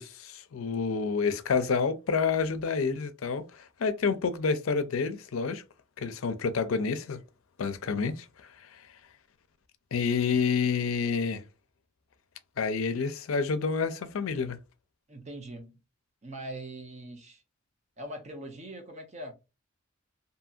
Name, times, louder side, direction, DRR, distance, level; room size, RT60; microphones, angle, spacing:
voice 1, 0.0-5.6 6.0-7.2 7.6-8.3 9.9-11.4 12.6-14.6, left 5 dB, 80° left, 0.5 m, -28 dB
voice 2, 15.1-15.8 16.2-17.4 18.0-19.3, right 1 dB, 35° right, 0.6 m, -41 dB
2.7 x 2.7 x 2.4 m
head